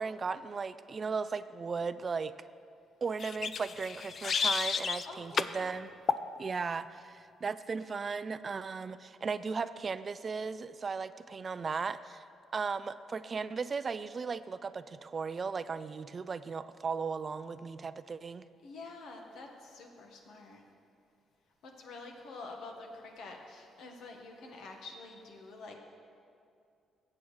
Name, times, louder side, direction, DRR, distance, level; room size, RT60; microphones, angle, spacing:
voice 1, 0.0-2.3 3.0-5.9 6.4-12.2 12.5-18.4, right 5 dB, 40° right, 14 dB, 0.3 m, -36 dB
sound 1, 3.2-5.1 5.4-5.6 6.1-6.3, left 6 dB, 50° left, 0.4 m, -31 dB
voice 2, 5.0-5.7 18.6-20.6 21.6-25.7, left 3 dB, 80° left, 2 dB, 1.4 m, -47 dB
18.0 x 7.6 x 3.2 m, 2.5 s
cardioid pair, 90°, 0 cm